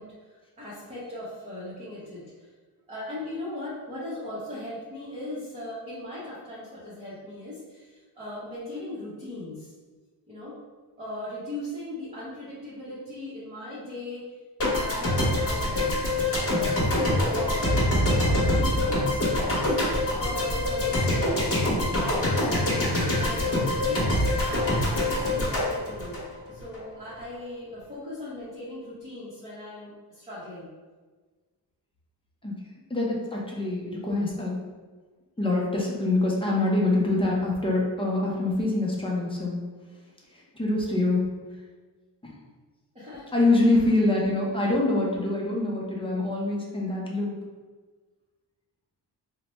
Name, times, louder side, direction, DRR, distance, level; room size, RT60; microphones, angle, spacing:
voice 1, 0.0-2.5 2.9-9.7 10.3-10.6 11.0-14.2 14.7-16.0 16.5-19.0 20.2-21.5 21.9-24.1 24.4-30.7 42.9-43.3, left 1 dB, 15° right, -10 dB, 0.8 m, -38 dB
sound 1, 14.6-26.8, left 1 dB, 35° left, 0.9 m, -25 dB
voice 2, 32.9-34.6 35.4-39.6 40.3-41.3 42.2-42.3 43.3-47.4, left 2 dB, 15° left, -4 dB, 0.5 m, -25 dB
4.1 x 2.1 x 3.0 m, 1.4 s
wide cardioid pair, 165°, 42 cm